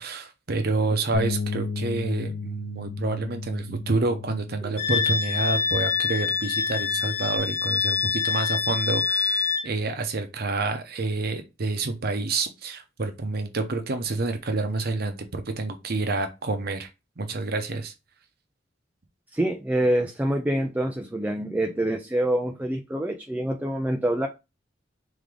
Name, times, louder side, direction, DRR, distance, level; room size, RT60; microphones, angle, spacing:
voice 1, 0.0-16.9 17.2-17.9, right 3 dB, 55° right, 0.8 m, -28 dB
Bass guitar, 1.1-7.4, left 4 dB, 70° left, 1.0 m, -35 dB
Wind instrument woodwind instrument, 4.8-9.7, left 5 dB, 40° left, 0.6 m, -25 dB
voice 2, 19.3-24.3, right 1 dB, 10° right, 0.4 m, -26 dB
3.6 x 3.4 x 3.7 m
head